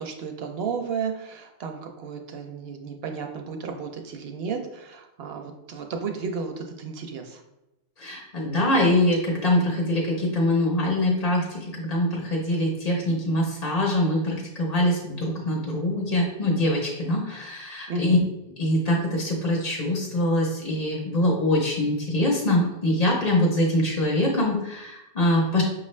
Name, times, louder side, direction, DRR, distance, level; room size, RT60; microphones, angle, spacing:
voice 1, 0.0-7.4 17.9-18.2, right 5 dB, 65° right, 4 dB, 0.7 m, -33 dB
voice 2, 8.0-18.2 18.6-25.6, left 1 dB, 40° left, -2 dB, 0.7 m, -24 dB
5.6 x 2.4 x 3.1 m, 0.91 s
omnidirectional pair, 1.2 m